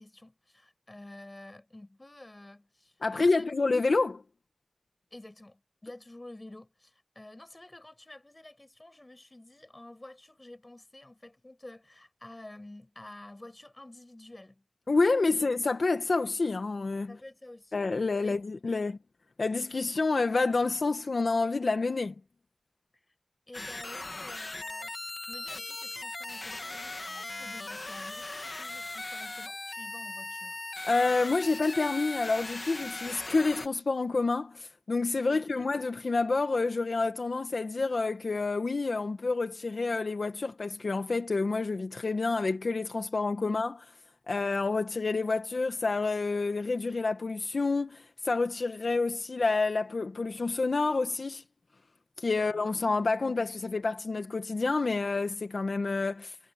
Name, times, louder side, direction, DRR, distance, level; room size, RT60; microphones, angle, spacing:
voice 1, 0.0-3.7 5.1-14.6 15.3-15.5 17.1-17.8 18.2-18.4 18.6-18.8 22.9-23.0 23.5-25.0 25.2-30.6 35.3-35.7 43.5-43.6 52.4-52.5 53.1-53.2, left 1 dB, 35° left, 6.3 m, -50 dB
voice 2, 3.0-4.2 14.9-17.2 17.7-19.0 19.4-22.1 30.8-43.8 44.3-51.4 52.2-56.4, left 3 dB, 85° left, 1.5 m, -28 dB
sound 1, 23.5-33.7, left 2 dB, 55° left, 2.6 m, -39 dB
wide cardioid pair, 45°, 0 cm